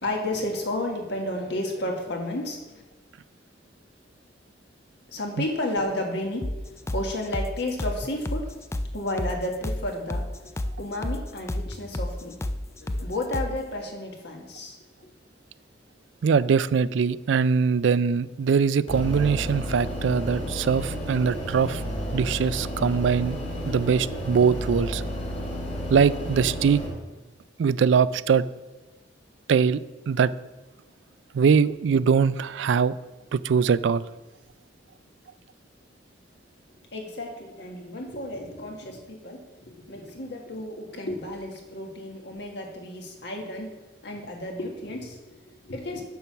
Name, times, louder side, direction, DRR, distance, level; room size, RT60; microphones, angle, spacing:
voice 1, 0.0-2.8 5.1-8.5 8.9-12.3 12.6-14.8 36.9-46.0, left 1 dB, 60° left, 2 dB, 1.6 m, -32 dB
sound 1, 6.4-13.6, left 1 dB, 15° left, 0.3 m, -31 dB
voice 2, 16.2-21.8 22.1-23.4 23.7-25.0 25.9-26.8 27.6-28.4 29.5-30.3 31.3-32.9 33.3-34.0, right 6 dB, 75° right, 17 dB, 0.3 m, -22 dB
sound 2, 18.9-26.9, equal, 35° left, 2.4 m, -32 dB
7.4 x 6.9 x 5.8 m, 1.1 s
head